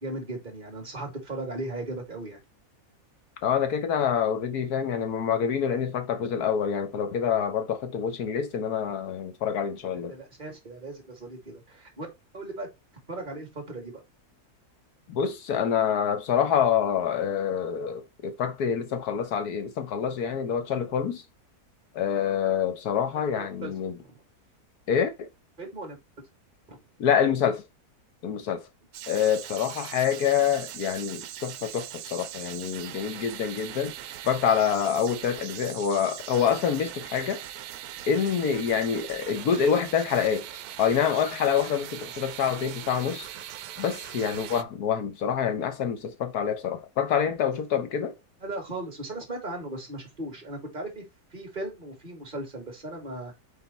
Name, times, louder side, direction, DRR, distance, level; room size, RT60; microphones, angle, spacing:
voice 1, 0.0-2.4 9.9-12.1 12.3-12.7 13.1-14.0 23.4-24.2 25.6-26.0 26.7-26.8 48.4-51.1 51.3-53.3, right 2 dB, 30° right, 2.6 m, -37 dB
voice 2, 3.4-10.1 15.1-21.2 21.9-24.0 24.9-25.3 27.0-27.6 28.2-28.7 29.1-33.9 34.3-37.4 38.1-40.5 40.8-43.3 43.8-48.1, left 7 dB, 75° left, 1.5 m, -26 dB
sound 1, 28.9-44.6, right 12 dB, 80° right, 1.1 m, -40 dB
5.4 x 4.1 x 4.3 m
omnidirectional pair, 1.6 m